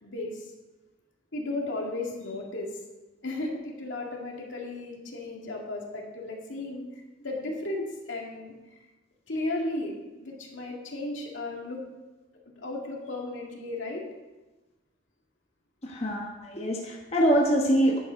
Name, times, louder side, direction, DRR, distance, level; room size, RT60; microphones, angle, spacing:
voice 1, 0.0-0.5 1.3-2.8 3.2-6.8 7.2-8.5 9.3-11.8 12.6-14.1, left 2 dB, 70° left, -1 dB, 2.3 m, -34 dB
voice 2, 15.8-18.0, equal, 30° left, -1 dB, 1.2 m, -24 dB
10.5 x 8.9 x 5.2 m, 1.1 s
head